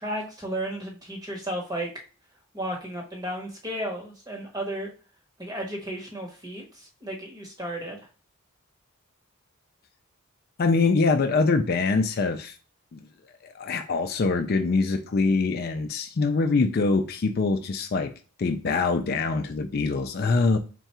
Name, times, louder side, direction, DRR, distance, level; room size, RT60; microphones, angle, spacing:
voice 1, 0.0-1.9 2.5-4.9 5.4-8.0, right 1 dB, 15° right, 0 dB, 0.9 m, -33 dB
voice 2, 10.6-12.6 12.9-13.0 13.4-18.1 18.4-20.6, left 3 dB, 45° left, 6 dB, 0.3 m, -24 dB
3.6 x 2.2 x 4.2 m, 0.37 s
head